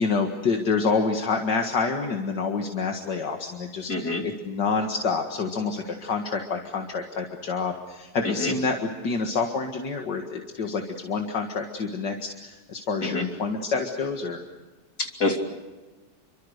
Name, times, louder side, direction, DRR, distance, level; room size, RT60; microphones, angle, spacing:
voice 1, 0.0-14.4, left 4 dB, 80° left, 3 dB, 2.5 m, -27 dB
voice 2, 3.9-4.2 8.2-8.5 13.0-13.3 15.0-15.4, left 2 dB, 65° left, 2 dB, 3.8 m, -26 dB
29.0 x 25.0 x 6.6 m, 1.2 s
omnidirectional pair, 1.8 m